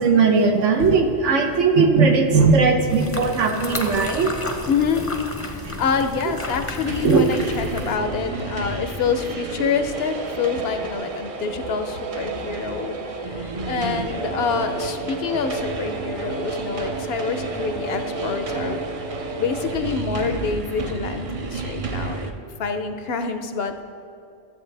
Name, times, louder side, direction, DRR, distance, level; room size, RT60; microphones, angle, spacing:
voice 1, 0.0-4.3 7.0-7.2, right 4 dB, 85° right, 4 dB, 1.2 m, -18 dB
sound 1, 2.9-8.0, left 1 dB, 15° left, 0.5 m, -32 dB
voice 2, 4.7-5.1 5.5-18.8 19.4-22.3 22.6-23.8, left 5 dB, 65° left, 8 dB, 0.8 m, -26 dB
sound 2, 6.8-22.3, right 3 dB, 45° right, 0.4 m, -30 dB
14.0 x 7.7 x 3.3 m, 2.7 s
omnidirectional pair, 1.2 m